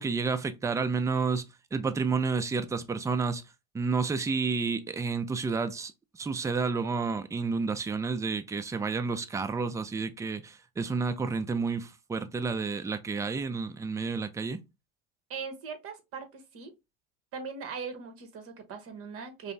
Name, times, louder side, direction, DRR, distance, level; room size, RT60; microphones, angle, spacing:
voice 1, 0.0-1.4 1.7-3.4 3.7-14.6, right 4 dB, 10° right, 0.4 m, -30 dB
voice 2, 15.3-16.7 17.3-19.5, right 5 dB, 50° right, 1.1 m, -40 dB
5.3 x 2.1 x 2.6 m
supercardioid pair, 95°, 31 cm